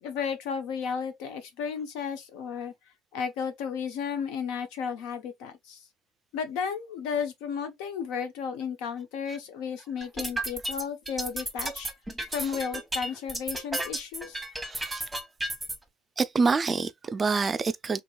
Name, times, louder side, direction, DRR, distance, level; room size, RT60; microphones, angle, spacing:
voice 1, 0.0-2.7 3.1-5.8 6.3-11.9 12.3-14.4, left 6 dB, 70° left, 0.8 m, -33 dB
sound 1, 10.0-15.8, right 1 dB, 5° right, 1.1 m, -33 dB
voice 2, 14.6-15.1 16.2-18.0, right 4 dB, 30° right, 0.3 m, -27 dB
2.9 x 2.9 x 2.4 m
hypercardioid pair, 75°, 0 cm